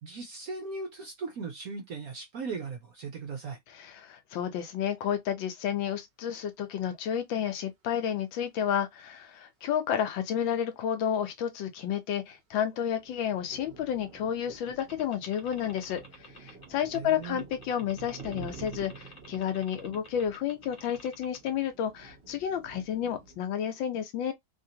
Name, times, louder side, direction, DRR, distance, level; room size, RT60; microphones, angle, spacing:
voice 1, 0.0-3.6 16.9-17.5, right 4 dB, 65° right, 0.9 m, -38 dB
voice 2, 3.8-16.0 16.4-24.3, left 9 dB, 75° left, 1.5 m, -31 dB
sound 1, 12.6-23.4, right 5 dB, 45° right, 0.8 m, -49 dB
sound 2, 14.7-21.5, left 2 dB, 45° left, 0.6 m, -50 dB
3.2 x 2.8 x 2.8 m
omnidirectional pair, 2.1 m